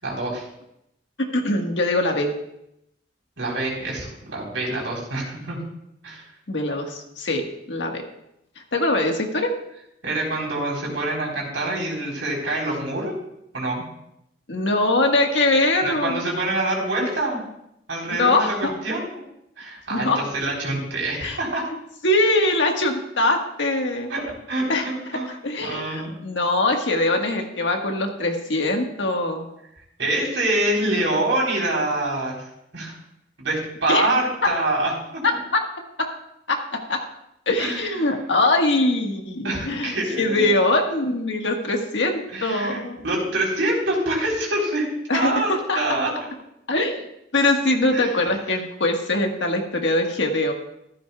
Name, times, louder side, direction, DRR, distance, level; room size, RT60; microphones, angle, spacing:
voice 1, 0.0-0.5 3.4-5.6 6.0-6.2 10.0-13.1 13.5-13.9 15.8-17.4 17.9-19.2 19.6-21.6 24.1-24.2 24.5-25.3 25.6-26.1 30.0-32.4 32.7-32.9 33.4-35.2 37.6-38.0 39.4-40.5 42.3-44.9 45.1-45.5 45.7-46.1 47.9-48.1, right 2 dB, 90° right, -3 dB, 4.1 m, -25 dB
voice 2, 1.2-2.3 6.5-8.0 8.7-9.5 14.5-16.2 17.0-17.1 18.1-18.7 19.9-20.2 21.2-21.4 22.0-24.1 24.7-29.5 33.9-34.1 35.5-35.6 36.0-36.1 36.5-37.0 37.5-43.0 45.1-45.8 46.7-50.5, left 2 dB, 75° left, 3 dB, 1.5 m, -22 dB
14.0 x 13.0 x 2.3 m, 0.81 s
head